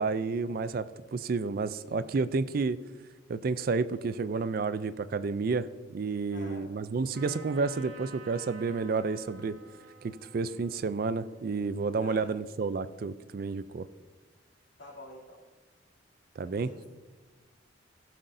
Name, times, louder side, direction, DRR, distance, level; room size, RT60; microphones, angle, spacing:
voice 1, 0.0-2.8 3.3-5.7 5.9-9.6 10.0-13.9 16.4-16.7, right 4 dB, 50° right, 15 dB, 0.3 m, -30 dB
voice 2, 6.3-7.0 12.0-12.3 14.8-15.4 16.4-16.9, left 1 dB, 70° left, -3 dB, 2.7 m, -48 dB
Trumpet, 7.1-12.6, right 3 dB, 75° right, 1.5 m, -52 dB
16.0 x 7.6 x 2.7 m, 1.3 s
head